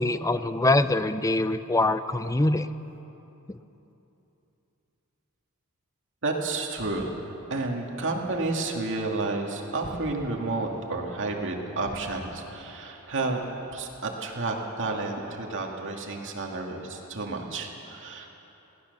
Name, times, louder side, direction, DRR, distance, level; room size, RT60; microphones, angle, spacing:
voice 1, 0.0-2.7 3.5-3.6, left 2 dB, 15° left, 12 dB, 0.5 m, -24 dB
voice 2, 6.2-7.1 7.5-13.4 13.7-18.3, right 3 dB, 60° right, 1 dB, 2.3 m, -31 dB
22.0 x 18.0 x 6.7 m, 3.0 s
head